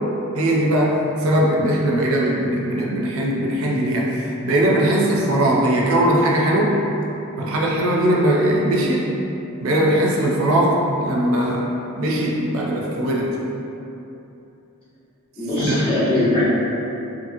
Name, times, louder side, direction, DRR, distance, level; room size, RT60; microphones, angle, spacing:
voice 1, 0.3-6.8 7.4-9.1 9.6-11.7 12.0-13.3 15.6-16.0, right 1 dB, 65° right, -2 dB, 0.4 m, -20 dB
voice 2, 15.4-16.5, left 1 dB, 25° left, -12 dB, 0.9 m, -20 dB
2.8 x 2.6 x 2.5 m, 2.9 s
head